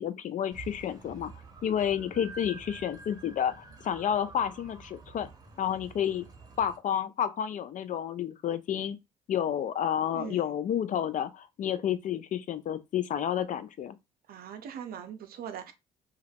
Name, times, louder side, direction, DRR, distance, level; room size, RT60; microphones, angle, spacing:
voice 1, 0.0-1.3 1.6-5.3 5.6-6.3 6.6-9.0 9.3-14.0, left 9 dB, 45° left, 0.4 m, -30 dB
sound 1, 0.5-6.8, right 4 dB, 20° right, 0.8 m, -49 dB
voice 2, 10.1-10.5 14.3-15.7, right 8 dB, 60° right, 0.6 m, -41 dB
2.3 x 2.1 x 3.3 m
hypercardioid pair, 60°, 18 cm